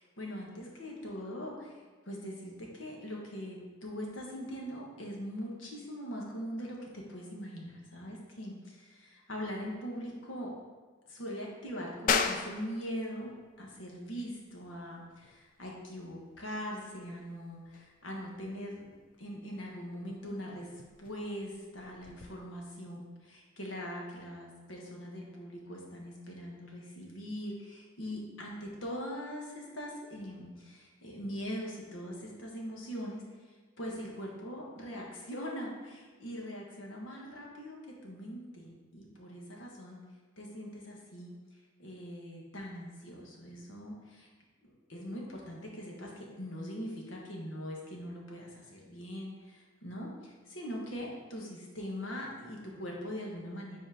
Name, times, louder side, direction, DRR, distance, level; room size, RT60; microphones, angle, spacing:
voice 1, 0.0-10.5 11.1-13.3 13.6-20.7 21.0-40.0 40.4-41.3 41.8-44.3 44.6-53.8, equal, 90° left, -1 dB, 1.4 m, -42 dB
sound 1, 12.1-22.3, left 6 dB, 45° left, 0.3 m, -39 dB
7.4 x 4.3 x 3.6 m, 1.4 s
head